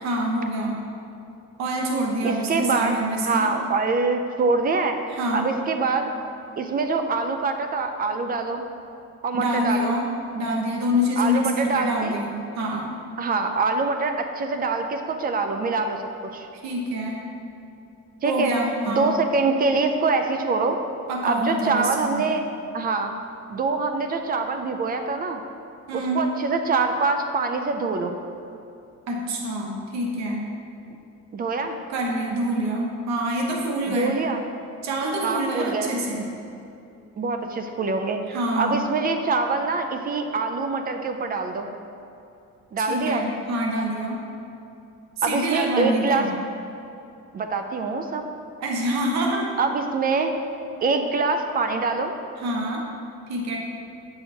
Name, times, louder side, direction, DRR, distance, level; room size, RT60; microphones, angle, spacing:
voice 1, 0.0-0.8 1.6-3.5 5.2-5.5 9.3-10.1 10.3-12.9 16.6-17.2 18.2-19.1 21.1-22.2 25.9-26.3 29.1-30.4 31.9-34.1 34.8-36.2 38.3-38.8 42.8-44.2 45.2-46.3 48.6-49.5 52.4-52.8 53.3-53.6, equal, 65° right, 0 dB, 1.3 m, -26 dB
voice 2, 2.2-3.0 3.3-6.1 6.6-8.6 9.2-9.9 11.2-12.2 13.2-16.5 18.2-18.5 18.8-20.8 21.2-22.4 22.7-23.1 23.5-25.4 25.9-28.2 31.3-31.8 33.9-34.4 35.2-35.9 37.2-41.7 42.7-43.2 45.2-46.3 47.3-48.2 49.6-50.3 50.8-52.2, right 4 dB, 30° right, 6 dB, 0.5 m, -24 dB
8.2 x 5.5 x 4.4 m, 2.6 s
cardioid pair, 150°, 30 cm